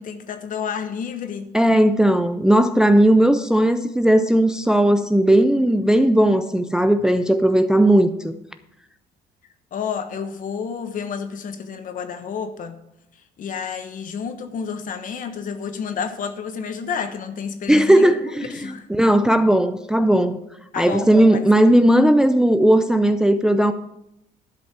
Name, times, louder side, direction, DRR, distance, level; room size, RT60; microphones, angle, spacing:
voice 1, 0.0-1.5 9.7-12.8 13.4-18.1 18.5-18.9 20.7-21.4, left 6 dB, 50° left, 9 dB, 1.3 m, -30 dB
voice 2, 1.5-8.3 17.7-18.6 18.9-20.4 20.8-23.7, right 1 dB, 5° right, 9 dB, 0.5 m, -16 dB
11.5 x 5.3 x 7.4 m, 0.84 s
cardioid pair, 110°, 17 cm